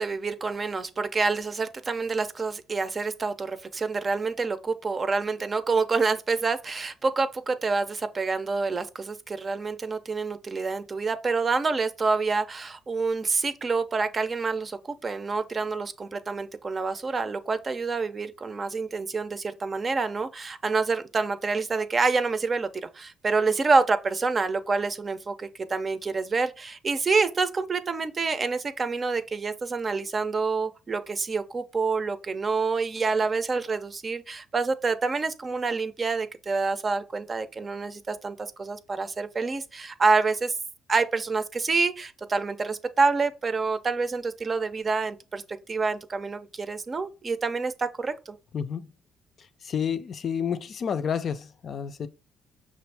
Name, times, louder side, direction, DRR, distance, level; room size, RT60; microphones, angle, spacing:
voice 1, 0.0-22.7 22.9-40.5 40.9-45.4 45.7-48.4, right 4 dB, 35° right, 0.6 m, -27 dB
voice 2, 48.5-48.9 49.6-52.1, left 7 dB, 55° left, 0.4 m, -30 dB
5.9 x 2.6 x 3.3 m
supercardioid pair, 75°, 0 cm